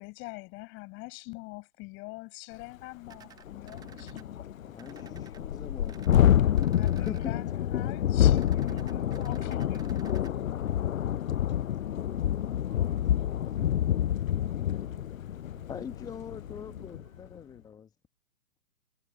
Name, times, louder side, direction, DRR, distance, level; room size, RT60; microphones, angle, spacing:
voice 1, 0.0-4.5 6.8-10.0, left 27 dB, 25° left, 7.4 m, -44 dB
Thunderstorm, 2.6-2.7 3.1-3.2 3.5-17.1, left 11 dB, 65° left, 0.5 m, -28 dB
sound 1, 3.1-4.2 4.8-5.4 5.9-6.2 6.5-7.3 8.4-10.3, right 8 dB, 10° right, 1.1 m, -53 dB
voice 2, 4.7-7.3 13.4-13.7 15.7-17.9, left 7 dB, 10° left, 1.3 m, -43 dB
voice 3, 8.7-15.2 15.6-17.2, right 27 dB, 30° right, 7.2 m, -59 dB
figure-of-eight pair, 120°, 43 cm